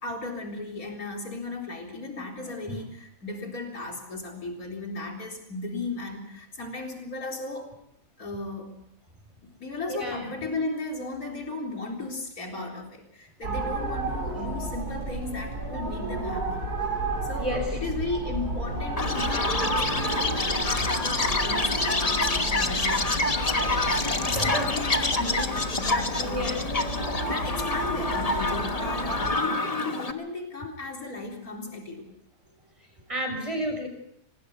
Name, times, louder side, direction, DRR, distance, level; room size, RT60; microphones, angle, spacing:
voice 1, 0.0-7.7 8.2-8.7 9.6-16.6 17.2-23.4 24.2-26.5 27.3-32.1, left 2 dB, 60° left, 1 dB, 4.4 m, -35 dB
voice 2, 9.9-10.3 17.4-17.8 24.1-24.7 26.3-26.7 33.1-33.9, equal, 20° right, 3 dB, 6.0 m, -31 dB
sound 1, 13.4-29.3, right 2 dB, 65° right, 5.0 m, -32 dB
Chirp tweet, 19.0-30.1, left 2 dB, 25° left, 1.3 m, -27 dB
25.5 x 20.5 x 5.5 m, 0.72 s
omnidirectional pair, 1.8 m